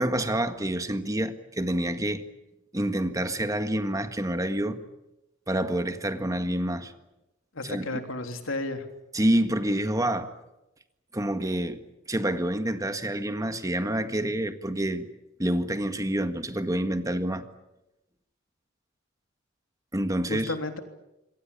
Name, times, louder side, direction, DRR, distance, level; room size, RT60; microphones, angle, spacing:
voice 1, 0.0-2.2 2.7-4.8 5.5-6.9 7.6-8.0 9.1-10.3 11.1-11.8 12.1-15.1 15.4-17.4 19.9-20.5, right 1 dB, 15° right, 1.7 m, -27 dB
voice 2, 7.5-8.8 20.3-20.8, left 2 dB, 90° left, 3.4 m, -32 dB
27.0 x 23.0 x 8.7 m
head